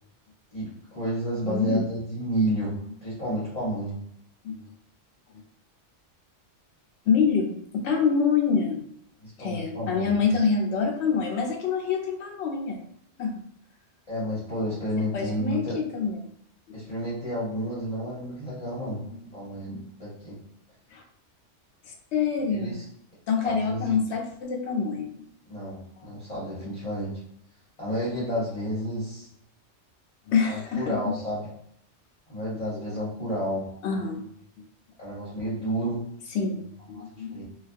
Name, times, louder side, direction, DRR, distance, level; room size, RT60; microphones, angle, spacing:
voice 1, 0.5-4.0 9.2-10.5 14.1-15.7 16.7-19.0 19.3-20.4 22.5-22.9 23.4-24.0 25.5-27.2 27.8-29.3 30.5-31.5 32.3-33.7 35.0-36.1 36.9-37.0 37.3-37.4, equal, 40° left, -9 dB, 0.9 m, -31 dB
voice 2, 1.5-1.8 4.4-4.5 7.1-8.8 9.4-12.8 13.2-13.4 15.1-16.2 19.1-19.2 19.7-19.8 20.9-21.0 22.1-22.8 23.3-25.1 30.3-31.1 32.9-33.0 33.8-34.3 36.3-37.4, left 5 dB, 75° left, 2 dB, 0.8 m, -26 dB
2.3 x 2.3 x 2.5 m, 0.72 s
omnidirectional pair, 1.2 m